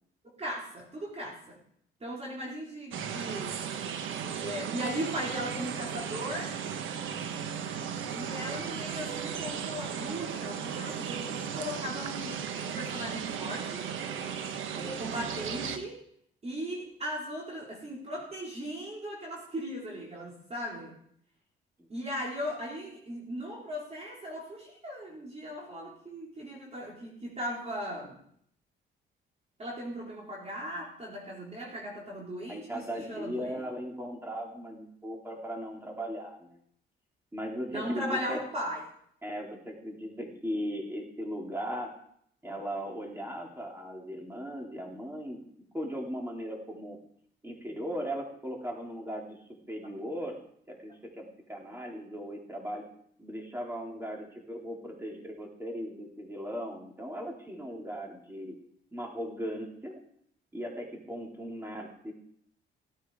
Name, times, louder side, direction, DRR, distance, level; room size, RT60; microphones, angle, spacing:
voice 1, 0.4-1.6 2.0-3.6 4.2-6.6 8.1-13.9 14.7-16.0 16.4-21.0 21.9-28.2 29.6-33.6 37.7-38.8, equal, 30° right, -3 dB, 4.0 m, -38 dB
sound 1, 2.9-15.8, right 7 dB, 80° right, 1.3 m, -36 dB
voice 2, 32.5-36.6 37.3-38.4 39.2-41.9 42.4-45.4 45.7-47.0 47.4-49.4 49.7-50.4 50.7-52.9 53.2-58.5 58.9-60.0 60.5-62.1, equal, 10° right, -1 dB, 4.1 m, -38 dB
16.5 x 9.9 x 5.0 m, 0.66 s
cardioid pair, 90°, 20 cm